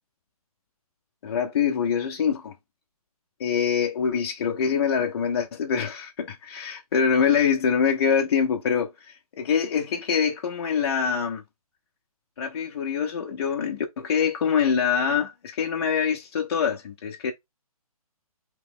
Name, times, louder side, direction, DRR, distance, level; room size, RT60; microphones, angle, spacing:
voice 1, 1.2-2.5 3.4-11.4 12.4-17.3, left 7 dB, 40° left, 0.6 m, -24 dB
4.0 x 3.0 x 3.6 m
hypercardioid pair, 160°, 19 cm